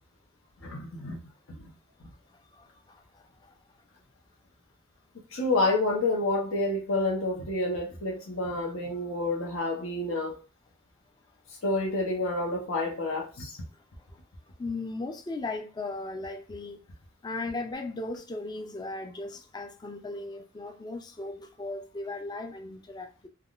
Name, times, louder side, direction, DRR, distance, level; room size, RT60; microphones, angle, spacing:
voice 1, 0.6-1.2 1.5-1.6 5.3-10.4 11.6-13.5, left 2 dB, 80° left, 0.9 m, -29 dB
voice 2, 2.5-3.5 14.1-14.2 14.6-16.8 17.2-23.3, left 2 dB, 20° left, 0.4 m, -37 dB
3.5 x 2.3 x 2.4 m
head